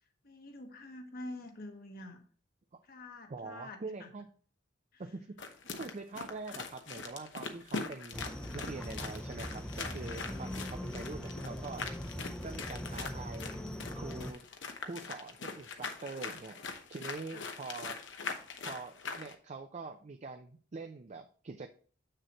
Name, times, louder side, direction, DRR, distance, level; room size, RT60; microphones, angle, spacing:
voice 1, 0.2-2.2 2.8-4.1 4.9-5.0 6.2-6.3 17.3-17.5, left 1 dB, 55° left, 4 dB, 1.3 m, -47 dB
voice 2, 3.3-4.3 5.0-11.9 12.4-13.5 14.0-14.4 14.8-16.6 16.9-18.0 18.6-21.7, right 3 dB, 40° right, 6 dB, 0.5 m, -44 dB
sound 1, 5.4-19.3, left 4 dB, 85° left, 1.0 m, -42 dB
sound 2, 8.1-14.3, equal, 5° left, 0.6 m, -41 dB
7.7 x 6.6 x 2.9 m, 0.43 s
head